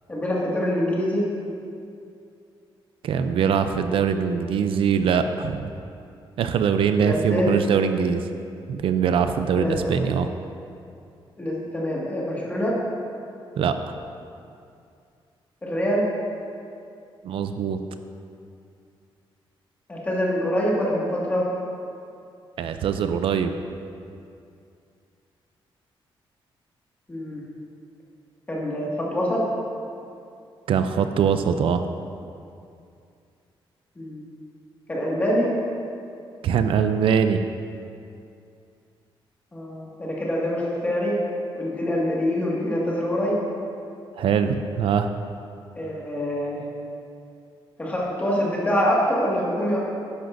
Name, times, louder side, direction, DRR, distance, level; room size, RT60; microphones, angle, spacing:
voice 1, 0.1-1.3 7.0-7.5 9.6-9.9 11.4-12.8 15.6-16.0 19.9-21.5 27.1-27.4 28.5-29.4 34.0-34.2 34.9-35.5 39.5-41.2 41.5-43.4 45.8-46.6 47.8-49.8, equal, 15° left, -5 dB, 1.9 m, -25 dB
voice 2, 3.0-5.7 6.4-8.3 8.7-10.3 13.6-13.7 17.2-17.8 22.6-23.5 30.7-31.8 36.4-37.4 44.2-45.1, right 7 dB, 75° right, 8 dB, 0.5 m, -22 dB
12.0 x 10.5 x 2.6 m, 2.5 s
wide cardioid pair, 160°, 9 cm